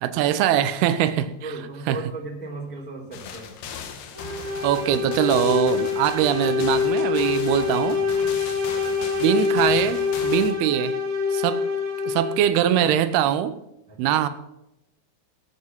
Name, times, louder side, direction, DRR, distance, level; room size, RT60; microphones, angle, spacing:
voice 1, 0.0-1.3 1.9-2.0 4.6-8.0 9.2-11.0 11.3-11.6 12.1-13.6 14.0-14.3, right 10 dB, 80° right, 12 dB, 2.6 m, -22 dB
voice 2, 1.4-3.6 8.0-8.4 13.9-14.2, right 3 dB, 5° left, -1 dB, 1.9 m, -36 dB
sound 1, 3.1-10.5, left 7 dB, 80° left, 3.4 m, -38 dB
sound 2, 4.1-12.5, left 5 dB, 55° right, 1.5 m, -25 dB
16.5 x 7.7 x 5.9 m, 0.84 s
omnidirectional pair, 4.8 m